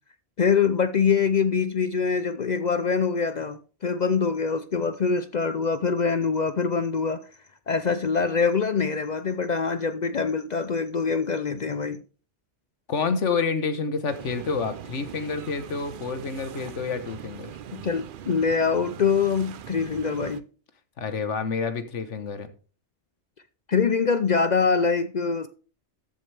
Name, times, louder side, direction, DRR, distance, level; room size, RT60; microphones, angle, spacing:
voice 1, 0.4-7.2 7.7-12.0 17.7-20.4 23.7-25.5, left 5 dB, 50° left, 0.6 m, -24 dB
voice 2, 12.9-17.5 21.0-22.5, left 5 dB, 90° left, 1.5 m, -28 dB
sound 1, 14.1-20.4, right 9 dB, 55° right, 0.7 m, -41 dB
13.5 x 7.6 x 3.4 m
omnidirectional pair, 1.2 m